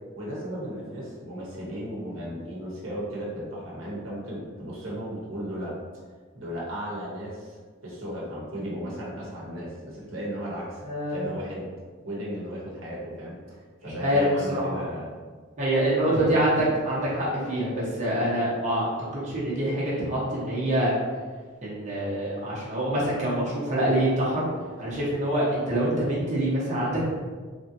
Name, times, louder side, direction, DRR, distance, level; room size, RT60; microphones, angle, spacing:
voice 1, 0.2-5.7 6.4-7.6 7.8-10.8 11.1-11.7 12.0-15.1, equal, 65° right, -6 dB, 0.9 m, -35 dB
voice 2, 10.8-11.3 14.0-14.8 15.6-20.9 21.6-24.5 24.8-27.1, right 1 dB, 35° right, -7 dB, 0.8 m, -25 dB
3.2 x 2.7 x 2.6 m, 1.5 s
head